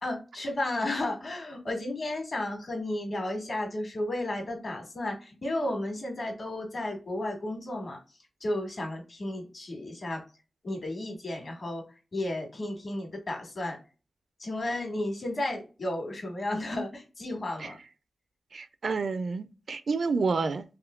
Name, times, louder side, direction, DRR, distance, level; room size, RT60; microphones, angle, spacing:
voice 1, 0.0-8.0 8.4-10.2 10.6-11.8 12.1-13.8 14.4-17.8, left 1 dB, 50° left, 1.6 m, -33 dB
voice 2, 18.5-20.6, right 4 dB, 65° right, 0.4 m, -29 dB
3.6 x 3.0 x 2.3 m
wide cardioid pair, 115°, 0 cm